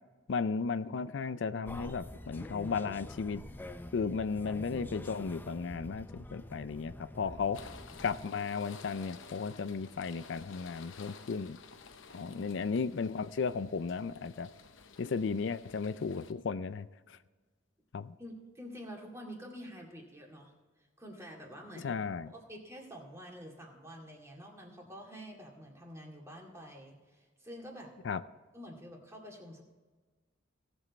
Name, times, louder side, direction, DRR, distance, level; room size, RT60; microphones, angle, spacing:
voice 1, 0.3-3.4 3.9-7.6 8.0-11.6 12.1-14.5 15.0-17.2 17.9-18.1 21.8-22.3 28.0-28.2, left 5 dB, 70° left, 13 dB, 0.4 m, -35 dB
sound 1, 1.6-8.3, left 1 dB, 10° left, 0.4 m, -46 dB
Bowed string instrument, 7.2-11.8, equal, 30° right, 2.5 m, -65 dB
sound 2, 7.5-16.3, left 5 dB, 85° left, 0.9 m, -53 dB
voice 2, 12.1-12.8 18.2-20.5 21.0-21.9 22.3-27.9 28.5-29.6, equal, 15° right, -1 dB, 2.2 m, -48 dB
18.0 x 7.2 x 4.2 m, 1.3 s
head